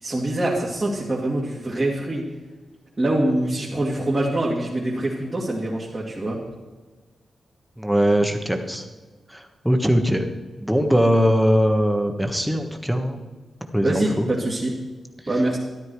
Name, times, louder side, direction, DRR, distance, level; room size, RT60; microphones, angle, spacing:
voice 1, 0.0-2.3 3.0-6.4 13.8-14.7 15.3-15.6, right 1 dB, 25° right, -5 dB, 2.3 m, -24 dB
voice 2, 7.8-8.9 9.3-10.2 10.6-13.2 13.7-14.3, equal, ahead, 5 dB, 1.3 m, -21 dB
13.0 x 12.0 x 4.7 m, 1.3 s
wide cardioid pair, 135°, 0 cm